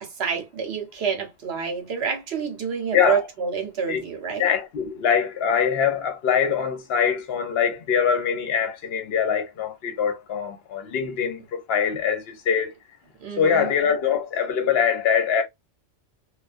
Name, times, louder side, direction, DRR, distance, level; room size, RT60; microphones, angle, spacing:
voice 1, 0.0-4.5 13.2-13.7, right 6 dB, 65° right, 1.0 m, -28 dB
voice 2, 4.4-12.7 13.4-15.4, left 7 dB, 60° left, 0.9 m, -23 dB
2.3 x 2.2 x 2.4 m
omnidirectional pair, 1.2 m